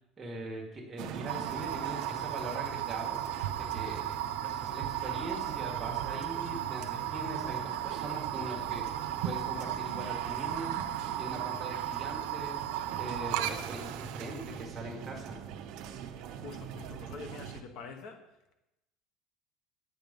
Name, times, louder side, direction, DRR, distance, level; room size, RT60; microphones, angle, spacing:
voice 1, 0.2-3.2 3.6-4.2 4.4-8.9 9.2-10.8 11.2-12.6 13.0-15.4, right 1 dB, 15° right, 1.8 m, -41 dB
sound 1, 1.0-17.6, right 9 dB, 50° right, 0.7 m, -43 dB
sound 2, 1.3-14.6, right 11 dB, 85° right, 0.7 m, -35 dB
voice 2, 16.3-18.3, left 5 dB, 50° left, 1.1 m, -45 dB
9.5 x 7.8 x 5.3 m
cardioid pair, 170°, 0 cm